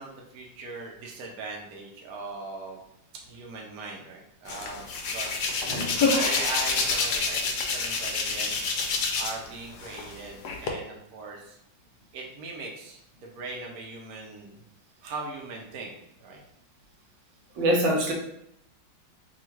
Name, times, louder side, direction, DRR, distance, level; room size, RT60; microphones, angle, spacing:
voice 1, 0.0-2.8 3.3-4.9 5.1-5.5 5.8-8.8 9.2-11.6 12.1-14.6 15.0-16.4, right 3 dB, 60° right, -1 dB, 1.1 m, -40 dB
Hands, 4.5-9.5 9.8-10.7, left 4 dB, 70° left, 1.1 m, -27 dB
voice 2, 17.6-18.1, right 1 dB, 85° right, 0 dB, 1.6 m, -24 dB
3.6 x 2.4 x 4.4 m, 0.76 s
omnidirectional pair, 2.0 m